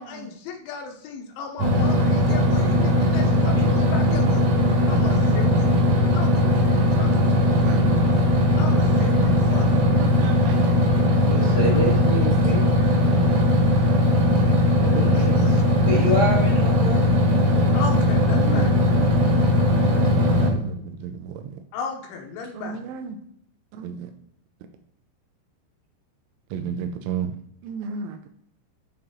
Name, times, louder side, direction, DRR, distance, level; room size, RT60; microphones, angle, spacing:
voice 1, 0.0-4.5 4.9-5.7 6.1-7.1 8.6-9.7 15.1-15.6 17.7-18.7 21.7-22.8, left 5 dB, 85° left, 2 dB, 3.3 m, -35 dB
sound 1, 1.6-20.5, left 1 dB, 65° right, 1.7 m, -19 dB
voice 2, 2.0-3.2 3.8-4.3 4.9-5.3 7.0-7.9 10.0-10.7 15.1-15.2 18.3-19.5 19.9-21.6 22.5-23.2 23.7-24.1 26.5-27.3 27.6-28.3, right 6 dB, 85° right, 6 dB, 3.0 m, -34 dB
voice 3, 3.5-3.8 11.2-12.7 14.7-15.4 15.8-17.5, left 1 dB, 70° left, -6 dB, 0.9 m, -28 dB
9.3 x 3.7 x 2.9 m, 0.68 s
omnidirectional pair, 5.5 m